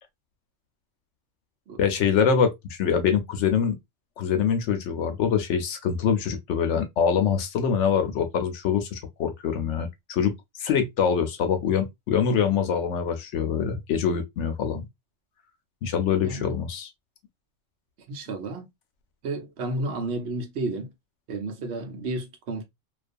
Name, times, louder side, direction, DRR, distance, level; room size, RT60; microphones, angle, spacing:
voice 1, 1.8-3.8 4.2-10.3 10.6-14.8 15.8-16.9, left 7 dB, 75° left, 0.9 m, -24 dB
voice 2, 16.2-16.5 18.1-18.7 19.2-20.9 21.3-22.6, right 2 dB, 65° right, 0.9 m, -32 dB
2.4 x 2.3 x 2.4 m
omnidirectional pair, 1.3 m